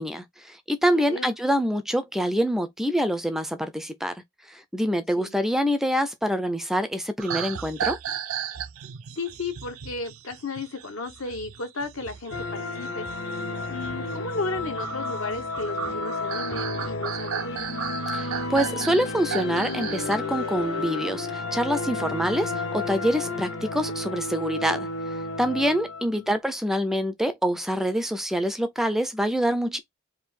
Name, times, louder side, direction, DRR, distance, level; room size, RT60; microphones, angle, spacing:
voice 1, 0.0-4.1 4.4-8.0 18.1-24.9 25.4-29.8, equal, ahead, 0.3 m, -26 dB
voice 2, 0.9-1.3 5.2-5.3 9.2-13.1 13.7-17.7 26.0-26.3, left 3 dB, 80° left, 1.2 m, -34 dB
sound 1, 7.2-20.2 20.6-20.9, right 8 dB, 85° right, 0.5 m, -35 dB
sound 2, 12.3-26.2, left 3 dB, 60° left, 0.6 m, -32 dB
3.6 x 2.6 x 4.1 m
head